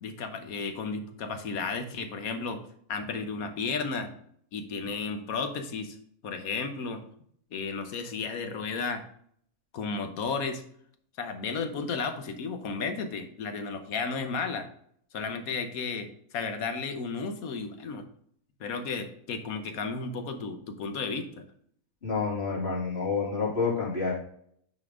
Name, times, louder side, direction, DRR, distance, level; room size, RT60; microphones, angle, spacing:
voice 1, 0.0-2.6 2.9-4.1 4.5-6.0 6.2-7.0 7.5-9.0 9.7-10.6 11.2-14.7 15.1-18.1 18.6-21.5, left 4 dB, 75° left, 8 dB, 1.4 m, -33 dB
voice 2, 22.0-24.1, left 4 dB, 45° left, -6 dB, 3.1 m, -28 dB
9.4 x 4.4 x 3.6 m, 0.64 s
omnidirectional pair, 1.5 m